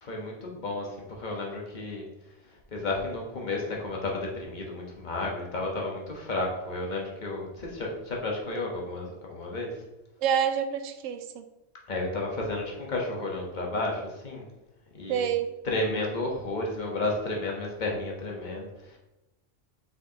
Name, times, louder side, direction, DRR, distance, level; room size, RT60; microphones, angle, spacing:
voice 1, 0.0-2.1 2.4-9.8 11.9-14.4 14.9-15.3 15.6-19.0, left 2 dB, 40° left, -1 dB, 1.2 m, -32 dB
voice 2, 10.2-11.5 15.1-15.5, right 8 dB, 90° right, 9 dB, 0.9 m, -27 dB
6.4 x 5.2 x 2.9 m, 0.99 s
omnidirectional pair, 1.3 m